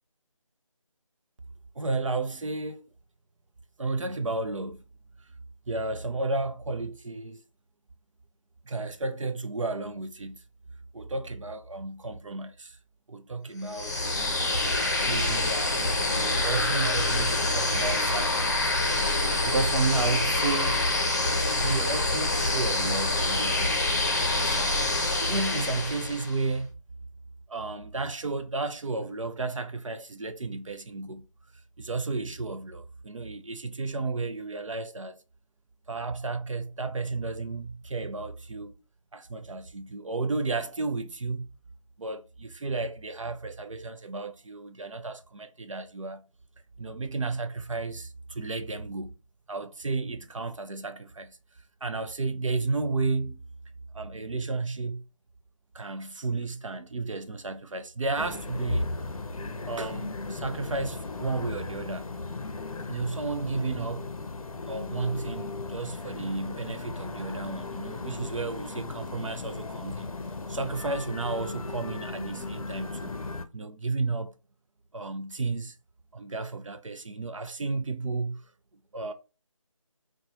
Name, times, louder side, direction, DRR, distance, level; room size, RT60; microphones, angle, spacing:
voice 1, 1.8-2.9 3.8-4.8 5.7-7.4 8.7-10.4 10.9-12.8 13.1-14.4 15.0-20.8 21.5-23.8 24.3-26.8 27.5-31.2 31.8-35.2 35.9-38.7 39.1-41.5 42.0-46.2 46.8-49.1 49.5-51.4 51.8-53.4 53.9-55.0 55.7-58.9 59.7-62.1 62.9-64.1 64.6-70.1 70.5-73.2 73.5-74.3 74.9-75.8 76.1-78.4 78.9-79.1, right 3 dB, 65° right, 0.5 m, -33 dB
sound 1, 13.7-26.4, left 2 dB, 30° left, 0.6 m, -26 dB
sound 2, 58.2-73.5, left 3 dB, 85° left, 0.5 m, -36 dB
4.0 x 2.2 x 2.8 m
figure-of-eight pair, 175°, 18 cm